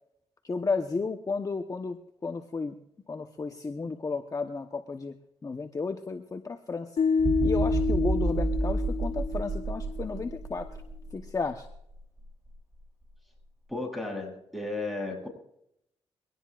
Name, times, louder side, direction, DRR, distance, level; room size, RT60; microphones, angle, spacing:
voice 1, 0.4-2.0 2.2-2.8 3.1-5.1 5.4-6.9 7.4-10.7 11.1-11.7, left 4 dB, 30° left, 5 dB, 1.0 m, -33 dB
sound 1, 7.0-10.1, left 5 dB, 60° left, 0.7 m, -28 dB
sound 2, 7.2-11.2 11.7-11.9, right 3 dB, 30° right, 3.6 m, -30 dB
voice 2, 13.7-15.3, left 2 dB, ahead, 1 dB, 8.0 m, -34 dB
23.5 x 18.0 x 2.5 m, 0.78 s
cardioid pair, 80°, 11 cm